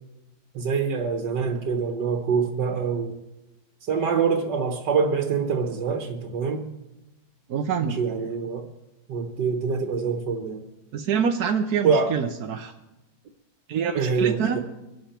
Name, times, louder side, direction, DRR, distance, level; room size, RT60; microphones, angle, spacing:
voice 1, 0.5-3.2 3.9-6.7 7.8-8.7 9.1-10.6 11.8-12.1 13.9-14.6, right 5 dB, 85° right, 3 dB, 1.8 m, -25 dB
voice 2, 7.5-7.9 10.9-12.7 13.7-14.6, right 7 dB, 65° right, 4 dB, 1.3 m, -25 dB
23.5 x 12.0 x 4.5 m, 1.0 s
omnidirectional pair, 1.8 m